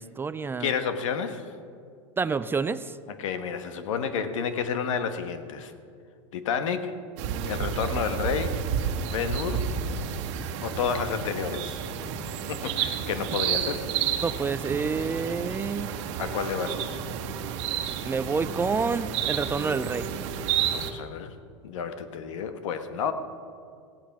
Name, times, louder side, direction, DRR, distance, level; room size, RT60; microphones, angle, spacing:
voice 1, 0.0-0.7 2.2-3.0 14.2-15.9 18.1-20.1, right 5 dB, 15° right, 14 dB, 0.3 m, -28 dB
voice 2, 0.6-1.5 3.2-5.7 6.3-6.9 7.4-8.5 9.0-9.7 10.6-11.8 12.5-13.8 16.2-17.0 20.7-21.3 21.6-23.1, left 6 dB, 80° left, 9 dB, 1.3 m, -30 dB
sound 1, 7.2-20.9, right 8 dB, 65° right, 1.3 m, -31 dB
17.0 x 10.5 x 5.9 m, 2.3 s
supercardioid pair, 125°, 16 cm